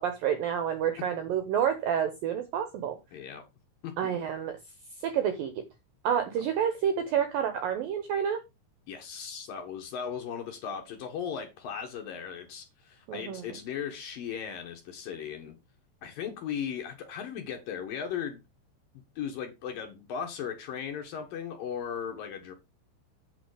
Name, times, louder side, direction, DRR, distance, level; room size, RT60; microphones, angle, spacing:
voice 1, 0.0-3.0 4.0-4.6 5.0-5.5 6.0-8.4 13.1-13.4, right 8 dB, 75° right, 2.1 m, -29 dB
voice 2, 1.0-1.3 3.1-3.4 3.8-4.2 8.9-15.6 16.0-18.4 19.2-22.5, left 7 dB, 60° left, 2.6 m, -37 dB
8.5 x 7.2 x 5.0 m
omnidirectional pair, 5.4 m